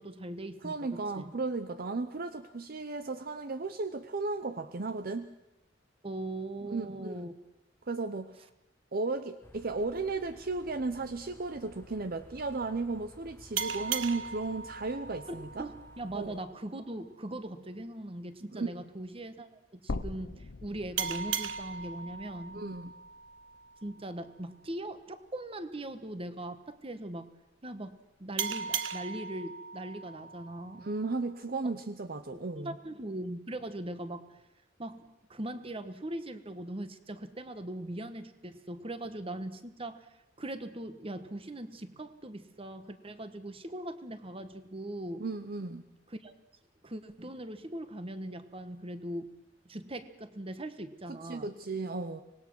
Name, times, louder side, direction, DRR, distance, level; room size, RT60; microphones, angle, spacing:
voice 1, 0.0-1.3 6.0-7.3 15.3-22.6 23.8-27.3 27.6-30.9 32.6-34.4 34.8-40.1 40.4-45.2 46.1-46.3 46.8-49.3 49.6-51.6, right 1 dB, 30° right, 11 dB, 1.3 m, -40 dB
voice 2, 0.6-5.3 6.7-7.3 7.9-8.5 8.9-15.7 16.1-16.4 18.5-18.7 22.5-22.9 30.7-32.8 45.2-45.8 51.1-52.2, right 3 dB, 50° right, 10 dB, 0.7 m, -35 dB
sound 1, 9.4-16.4, left 1 dB, 15° left, 0.7 m, -55 dB
sound 2, 13.6-16.8 21.0-24.2 28.4-31.3, right 7 dB, 85° right, 1.0 m, -38 dB
sound 3, 19.9-24.0 24.4-24.5 25.9-26.0, left 2 dB, 70° left, 0.8 m, -43 dB
25.5 x 19.5 x 6.3 m, 0.93 s
head